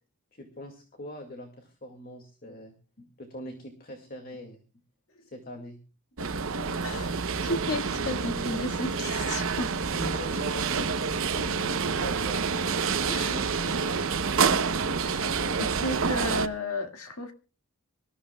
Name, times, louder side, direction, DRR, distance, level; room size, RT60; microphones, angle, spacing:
voice 1, 0.3-4.6 5.2-5.8 9.6-11.8 12.0-12.6 13.1-13.9, left 1 dB, 40° left, 2.3 m, -43 dB
sound 1, 6.2-16.5, right 5 dB, 65° right, 0.8 m, -28 dB
voice 2, 6.8-9.7 13.1-13.4 15.0-15.3 15.6-17.3, left 2 dB, 65° left, 2.0 m, -33 dB
25.5 x 14.0 x 2.3 m
head